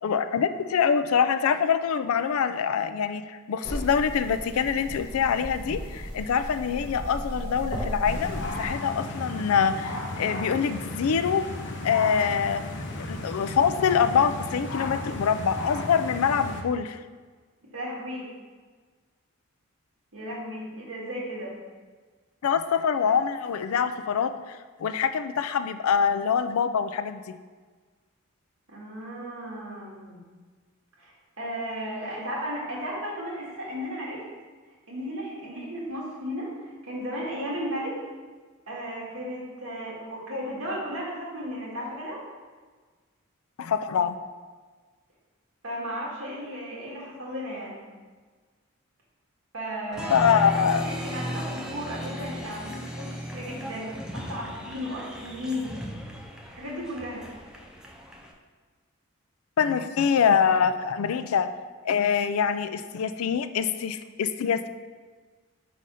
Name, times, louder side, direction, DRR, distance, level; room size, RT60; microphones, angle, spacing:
voice 1, 0.0-11.5 11.8-12.6 13.1-17.0 22.4-24.3 24.8-27.2 43.6-44.2 50.1-50.9 59.6-61.5 61.8-64.7, left 7 dB, 85° left, 11 dB, 0.4 m, -24 dB
sound 1, 3.6-8.7, equal, 25° left, 1.5 m, -35 dB
sound 2, 8.0-16.6, left 2 dB, 55° left, 0.7 m, -34 dB
voice 2, 17.7-18.3 20.1-21.6 28.7-30.2 31.0-34.2 34.9-38.0 38.7-42.2 45.6-47.9 49.5-55.8 56.5-57.2, equal, 80° right, -5 dB, 1.9 m, -35 dB
Applause, 49.9-58.3, equal, 5° right, 0.4 m, -36 dB
4.9 x 3.9 x 5.5 m, 1.4 s
head